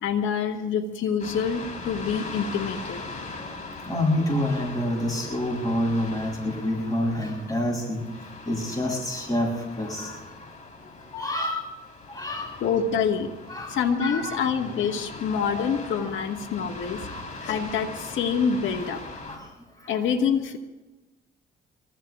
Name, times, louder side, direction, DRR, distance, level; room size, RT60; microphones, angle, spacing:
voice 1, 0.0-3.0 12.6-13.3 13.7-17.1 17.4-19.0 19.9-20.6, left 6 dB, 75° left, 4 dB, 1.7 m, -26 dB
sound 1, 1.2-19.4, left 3 dB, 40° left, 3.9 m, -40 dB
voice 2, 3.8-8.1 8.5-10.2 11.1-11.6 12.1-12.5 13.5-13.7 14.0-14.5 15.3-15.8 17.0-17.3 19.3-19.5 19.8-20.0, left 1 dB, 20° left, 0 dB, 7.1 m, -28 dB
24.5 x 24.0 x 2.4 m, 1.1 s
cardioid pair, 90°, 20 cm